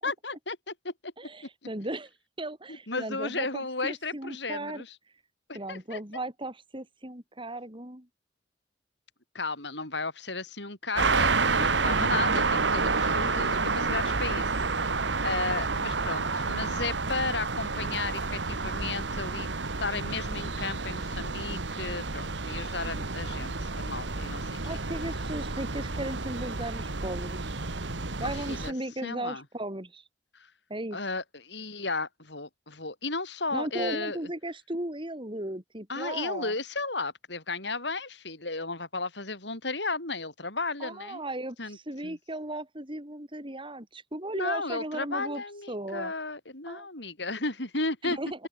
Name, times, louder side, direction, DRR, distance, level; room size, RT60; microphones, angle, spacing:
voice 1, 0.0-1.1 2.9-4.9 5.5-6.0 9.3-14.5 14.8-19.5 19.8-24.8 28.2-28.7 29.0-29.4 30.3-30.5 30.9-34.2 35.9-41.2 41.6-41.8 42.0-42.2 44.3-48.2, left 3 dB, 70° left, 7.7 m, -34 dB
voice 2, 1.2-2.1 2.4-4.8 5.5-8.1 24.6-27.5 28.2-30.0 30.7-31.0 33.5-36.5 40.8-46.1 46.7-46.9 48.0-48.5, right 1 dB, 30° right, 5.6 m, -36 dB
sound 1, 11.0-28.7, right 4 dB, 75° right, 1.8 m, -29 dB
open air
head